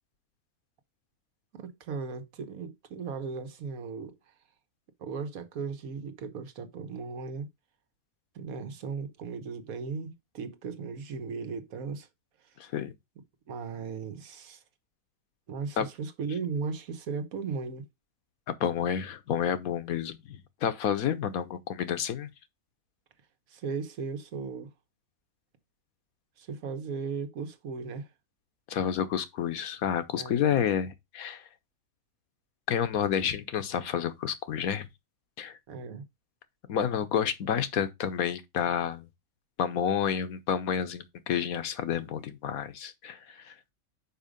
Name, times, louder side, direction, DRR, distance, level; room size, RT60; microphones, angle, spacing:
voice 1, 1.5-4.2 5.0-7.5 8.3-12.1 13.5-14.6 15.5-17.8 23.5-24.7 26.4-28.1 30.1-30.6 35.7-36.0, right 5 dB, 75° right, 1.4 m, -37 dB
voice 2, 12.6-12.9 15.8-15.9 18.6-22.3 28.7-31.5 32.7-34.9 35.4-35.6 36.7-39.1 39.6-43.5, left 8 dB, 75° left, 1.3 m, -30 dB
5.5 x 5.0 x 5.1 m
omnidirectional pair, 1.5 m